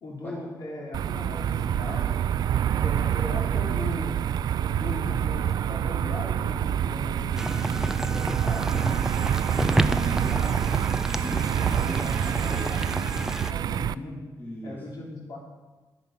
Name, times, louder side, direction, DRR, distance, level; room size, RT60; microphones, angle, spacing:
voice 1, 0.0-2.2 2.8-4.2 4.6-9.0 12.3-14.2 14.6-15.4, left 2 dB, 65° left, -1 dB, 3.0 m, -38 dB
sound 1, 0.9-13.9, right 10 dB, 70° right, 0.3 m, -27 dB
sound 2, 7.3-13.5, right 1 dB, 5° right, 0.4 m, -30 dB
voice 2, 9.7-12.7 14.4-14.9, left 1 dB, 30° left, -5 dB, 3.0 m, -38 dB
12.0 x 10.5 x 5.6 m, 1.2 s
cardioid pair, 110°, 7 cm